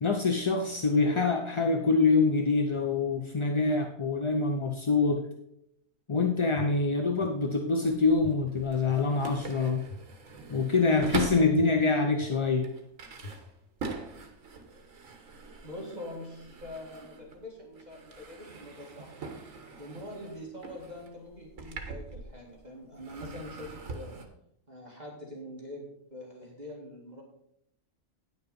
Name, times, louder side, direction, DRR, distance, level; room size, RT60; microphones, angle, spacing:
voice 1, 0.0-5.2 6.1-9.8 10.5-12.7, left 4 dB, 35° left, 4 dB, 0.5 m, -25 dB
sound 1, 6.5-6.6 7.2-7.3 8.2-8.3 8.9-9.0 9.9-10.0 10.5-10.6 11.5-11.6 12.2-12.3 13.2-13.3 13.9-14.0, left 3 dB, 70° left, 1.8 m, -42 dB
sound 2, 7.7-11.6 12.2-17.5 17.8-22.6 22.9-24.3, right 4 dB, 75° right, 1.6 m, -42 dB
voice 2, 15.6-19.2 19.8-24.2 24.7-27.2, left 1 dB, 30° right, -2 dB, 1.9 m, -44 dB
9.6 x 6.3 x 5.2 m, 0.75 s
omnidirectional pair, 1.4 m